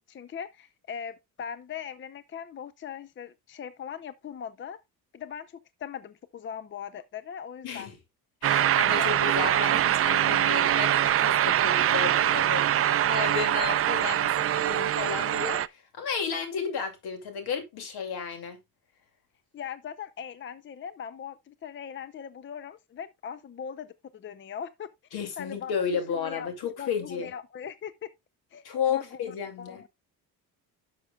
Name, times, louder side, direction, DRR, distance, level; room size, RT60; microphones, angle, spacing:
voice 1, 0.1-4.8 5.1-7.9 8.5-9.5 19.5-24.9 25.4-25.7 26.1-26.5 26.8-28.1 28.5-29.9, left 8 dB, 30° left, 0.6 m, -40 dB
voice 2, 7.6-8.0 8.4-18.6 25.1-27.3 28.6-29.8, left 6 dB, 75° left, 2.5 m, -33 dB
sound 1, 8.4-15.7, right 11 dB, 40° right, 0.4 m, -24 dB
11.5 x 6.6 x 2.3 m
cardioid pair, 120°, 38 cm